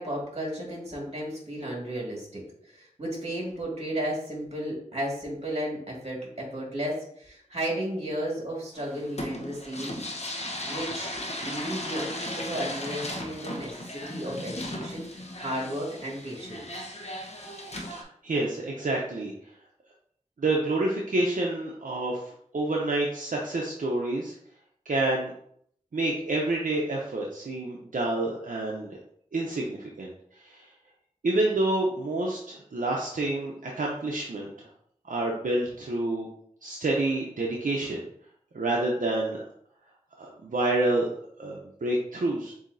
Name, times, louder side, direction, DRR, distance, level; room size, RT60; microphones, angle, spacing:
voice 1, 0.0-10.0 10.7-11.1 11.4-15.1 15.4-16.9, right 1 dB, 50° right, -3 dB, 1.9 m, -34 dB
sound 1, 8.7-18.0, left 1 dB, 55° left, 0.8 m, -36 dB
voice 2, 17.9-19.3 20.4-22.2 22.5-24.3 24.9-25.3 25.9-28.9 29.3-30.1 30.4-30.7 31.2-34.5 35.1-36.3 36.6-38.0 38.5-39.4 40.2-41.1 41.4-42.5, right 2 dB, 80° right, -2 dB, 0.7 m, -28 dB
7.1 x 2.7 x 2.6 m, 0.67 s
wide cardioid pair, 50°, 14 cm